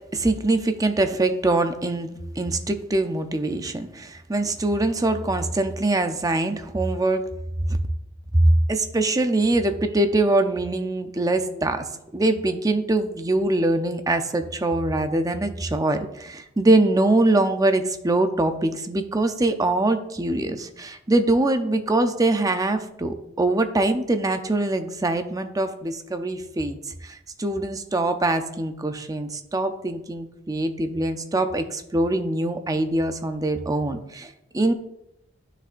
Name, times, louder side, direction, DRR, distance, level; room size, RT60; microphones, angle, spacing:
voice 1, 0.1-7.2 8.3-8.4 8.7-34.7, right 2 dB, 20° right, 8 dB, 0.5 m, -23 dB
10.0 x 6.6 x 2.5 m, 0.83 s
head